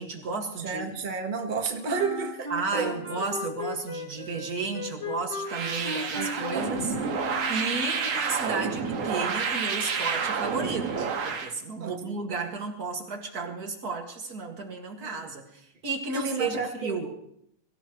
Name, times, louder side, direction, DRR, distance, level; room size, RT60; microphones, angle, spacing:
voice 1, 0.0-0.9 2.5-6.9 7.2-17.1, right 4 dB, 35° right, 2 dB, 2.1 m, -33 dB
voice 2, 0.6-3.2 6.1-6.7 11.8-12.2 15.0-15.2 16.1-17.1, right 4 dB, 75° right, 3 dB, 0.4 m, -32 dB
Wind instrument woodwind instrument, 1.8-7.8, left 2 dB, 35° left, 0.5 m, -37 dB
sound 1, 5.4-11.5, right 5 dB, 60° right, 2.4 m, -29 dB
23.0 x 15.0 x 3.1 m, 0.75 s
omnidirectional pair, 3.3 m